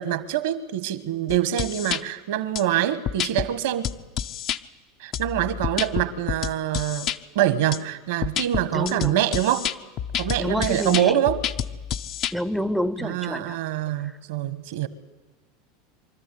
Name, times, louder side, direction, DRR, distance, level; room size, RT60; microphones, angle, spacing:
voice 1, 0.0-3.9 5.0-9.7 10.2-11.4 13.0-14.9, right 11 dB, 75° right, 14 dB, 1.2 m, -25 dB
sound 1, 1.3-2.0 2.6-2.7 3.1-3.5 3.8-4.6 5.1-7.2 7.7-7.8 8.2-12.3, left 9 dB, 50° left, 0.7 m, -29 dB
voice 2, 8.7-9.2 10.4-11.2 12.3-13.6 14.0-14.1, equal, ahead, 15 dB, 0.6 m, -28 dB
24.0 x 13.0 x 8.4 m, 1.2 s
hypercardioid pair, 95°, 0 cm